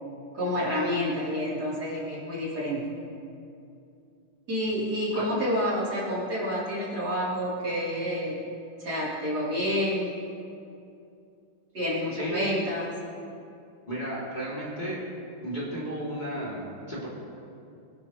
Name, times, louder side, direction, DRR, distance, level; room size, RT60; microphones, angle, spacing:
voice 1, 0.3-2.8 4.5-8.4 8.8-10.1 11.7-12.9, equal, 55° right, -8 dB, 4.3 m, -29 dB
voice 2, 12.1-12.5 13.9-15.0 15.4-17.1, right 1 dB, 20° left, -7 dB, 3.2 m, -33 dB
25.0 x 11.5 x 3.3 m, 2.6 s
omnidirectional pair, 2.1 m